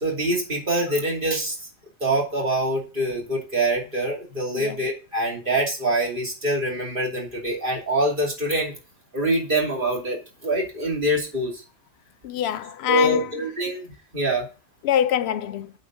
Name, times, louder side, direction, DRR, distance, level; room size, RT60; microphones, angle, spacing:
voice 1, 0.0-1.5 2.0-8.7 9.1-10.2 10.4-11.5 12.9-13.9 14.1-14.4, right 1 dB, 40° right, 2.9 m, -24 dB
voice 2, 12.2-13.4 14.8-15.7, left 10 dB, 65° left, 0.8 m, -24 dB
8.6 x 4.4 x 6.2 m
omnidirectional pair, 1.3 m